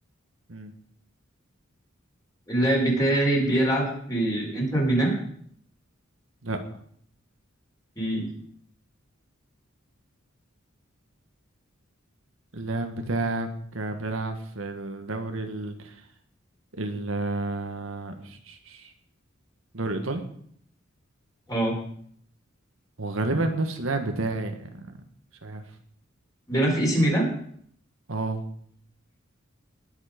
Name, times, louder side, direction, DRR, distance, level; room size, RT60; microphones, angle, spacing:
voice 1, 2.5-5.1 8.0-8.3 21.5-21.8 26.5-27.3, right 1 dB, 20° left, -2 dB, 4.6 m, -23 dB
voice 2, 12.5-15.9 16.8-18.9 19.7-20.2 23.0-25.0 25.4-25.6 28.1-28.4, right 2 dB, 75° right, 5 dB, 1.6 m, -30 dB
19.5 x 7.4 x 5.2 m, 0.62 s
head